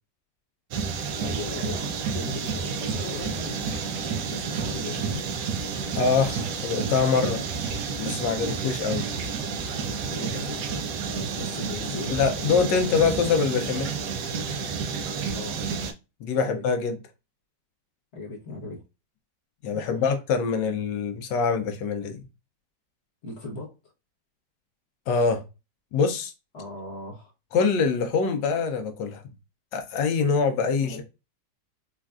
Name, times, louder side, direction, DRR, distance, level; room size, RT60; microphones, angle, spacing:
sound 1, 0.7-15.9, right 5 dB, 75° right, 1.1 m, -30 dB
voice 1, 1.2-3.6 3.9-5.3 10.1-13.7 15.3-15.6 16.4-16.6 18.1-18.8 19.7-20.1 23.2-23.7 26.5-27.3 30.8-31.0, left 2 dB, 45° left, 0.9 m, -38 dB
voice 2, 6.0-7.4 8.0-9.1 12.1-13.9 16.2-17.0 19.6-22.2 25.1-25.4 25.9-26.3 27.5-29.2 29.7-31.0, left 5 dB, 80° left, 1.3 m, -24 dB
4.3 x 2.4 x 2.3 m
omnidirectional pair, 2.0 m